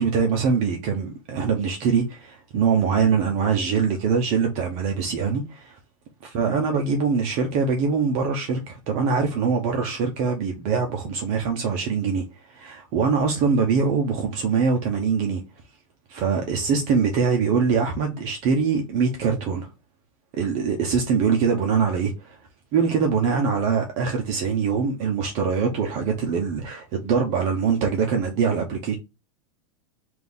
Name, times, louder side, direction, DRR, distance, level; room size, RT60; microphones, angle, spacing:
voice 1, 0.0-5.8 6.3-15.4 16.1-19.7 20.3-22.4 22.7-28.9, right 5 dB, 40° right, 0.7 m, -23 dB
3.9 x 2.6 x 3.5 m
supercardioid pair, 155°, 18 cm